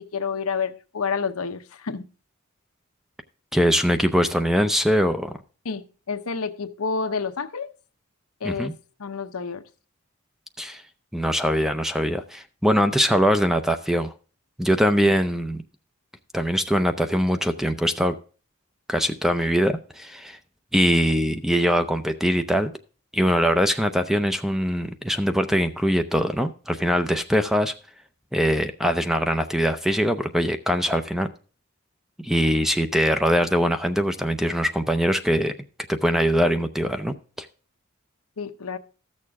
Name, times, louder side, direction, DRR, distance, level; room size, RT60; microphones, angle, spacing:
voice 1, 0.1-2.0 5.6-7.7 8.4-8.7 9.0-9.6 38.4-38.8, left 5 dB, 85° left, 0.8 m, -29 dB
voice 2, 3.5-5.3 8.4-8.7 10.6-10.8 11.1-14.1 14.6-15.6 16.3-18.2 18.9-20.4 20.7-22.7 23.1-27.7 28.3-31.3 32.2-35.5 35.9-37.5, equal, ahead, 0.5 m, -22 dB
14.0 x 6.6 x 3.5 m
head